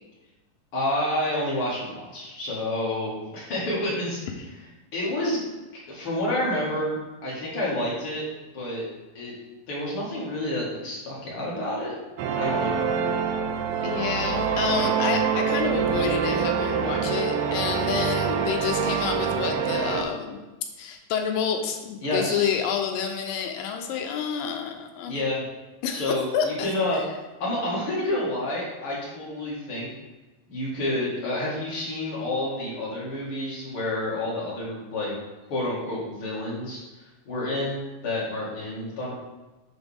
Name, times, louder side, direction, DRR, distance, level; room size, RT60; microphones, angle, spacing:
voice 1, 0.7-4.2 4.9-5.4 5.9-7.0 7.2-8.3 8.5-8.8 9.1-9.3 9.7-12.0 12.3-12.9 22.0-22.7 25.1-25.4 25.9-27.0 27.4-29.9 30.5-35.1 35.5-36.8 37.3-39.1, left 1 dB, 45° left, -6 dB, 2.5 m, -29 dB
sound 1, 12.2-20.0, right 6 dB, 85° right, 2.3 m, -25 dB
voice 2, 13.8-20.4 20.8-25.2 25.8-26.7, left 7 dB, 80° left, 4 dB, 2.4 m, -29 dB
11.5 x 4.0 x 3.5 m, 1.1 s
omnidirectional pair, 4.0 m